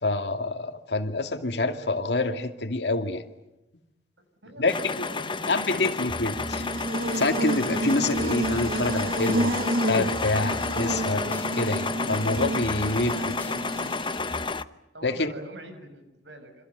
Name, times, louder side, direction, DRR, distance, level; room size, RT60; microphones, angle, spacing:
voice 1, 0.0-3.2 4.6-5.1 5.5-6.7 7.2-13.6 15.0-15.3, left 2 dB, 65° left, 6 dB, 2.4 m, -27 dB
voice 2, 4.2-5.9 14.9-16.7, right 1 dB, 85° right, 8 dB, 6.3 m, -45 dB
sound 1, 4.7-14.6, left 4 dB, 30° left, 0.9 m, -31 dB
sound 2, 6.1-9.8 10.0-11.8 12.1-14.4, equal, 10° left, 3.3 m, -42 dB
Buzz, 6.3-14.4, right 1 dB, 55° right, 1.0 m, -30 dB
29.0 x 26.5 x 6.8 m, 0.91 s
head